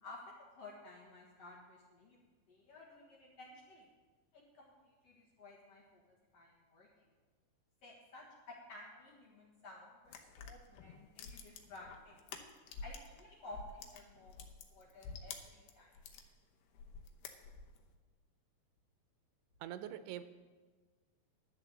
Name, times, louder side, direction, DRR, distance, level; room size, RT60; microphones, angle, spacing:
voice 1, 0.0-3.9 4.3-6.0 6.3-6.9 7.8-12.2 12.8-14.4 14.7-15.9, left 2 dB, 55° left, -3 dB, 2.0 m, -54 dB
sound 1, 10.1-13.2 13.5-16.3 16.7-17.8, left 5 dB, 75° left, 2.7 m, -49 dB
voice 2, 19.6-20.2, right 11 dB, 85° right, 11 dB, 2.7 m, -43 dB
11.0 x 8.4 x 6.8 m, 1.4 s
omnidirectional pair, 4.7 m